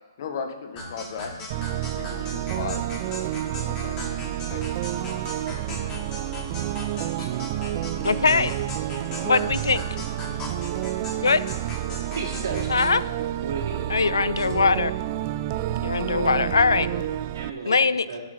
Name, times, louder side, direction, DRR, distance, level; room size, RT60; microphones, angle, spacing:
voice 1, 0.2-1.3 1.9-2.9 3.6-4.1 4.5-4.6, left 6 dB, 50° left, 6 dB, 1.4 m, -35 dB
sound 1, 0.8-12.7, left 2 dB, 25° left, 2.9 m, -38 dB
sound 2, 1.5-17.5, right 13 dB, 35° right, 0.4 m, -29 dB
voice 2, 8.0-8.5 9.2-9.8 11.2-11.5 12.7-13.0 13.9-14.9 15.8-16.9 17.7-18.1, left 4 dB, 80° left, 16 dB, 0.4 m, -21 dB
voice 3, 12.1-12.9 13.2-13.9 14.4-14.5 16.7-17.0 17.3-17.8 18.1-18.2, right 4 dB, 65° right, -1 dB, 2.8 m, -33 dB
10.5 x 7.8 x 4.2 m, 1.5 s
hypercardioid pair, 135°, 2 cm